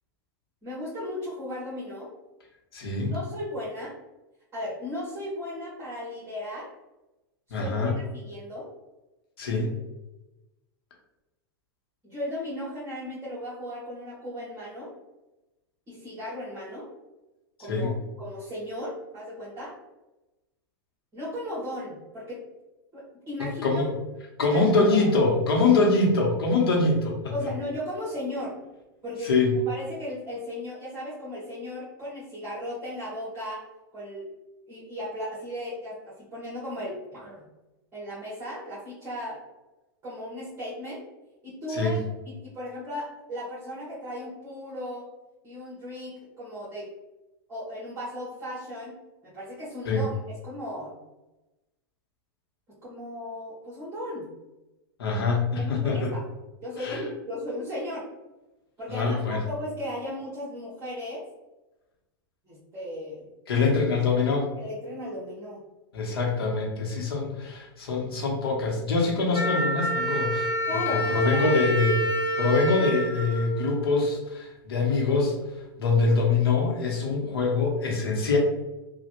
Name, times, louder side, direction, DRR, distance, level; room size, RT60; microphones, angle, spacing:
voice 1, 0.6-2.1 3.1-3.9 4.5-6.7 7.5-8.7 12.0-14.9 15.9-16.9 17.6-19.7 21.1-22.4 22.9-23.8 24.4-24.6 27.3-28.5 29.0-29.3 29.6-33.6 33.9-34.2 34.7-37.4 37.9-39.4 40.0-41.0 41.4-42.0 42.2-45.1 45.4-46.9 47.5-48.9 49.2-51.0 52.8-54.3 55.5-56.2 56.6-58.0 58.8-61.2 62.4-63.3 64.6-65.6 70.7-71.6, left 1 dB, 20° right, -9 dB, 1.4 m, -36 dB
voice 2, 2.7-3.1 7.5-8.0 9.4-9.7 17.7-18.0 23.4-23.9 24.4-27.5 29.2-29.6 41.7-42.0 49.8-50.0 55.0-56.1 56.8-57.0 58.9-59.4 63.5-64.5 65.9-71.9 72.4-75.4 75.8-78.4, left 3 dB, 85° left, -1 dB, 1.0 m, -24 dB
Wind instrument woodwind instrument, 69.3-74.1, equal, 20° left, 0.9 m, -28 dB
3.2 x 2.4 x 3.0 m, 1.0 s
hypercardioid pair, 120°, 12 cm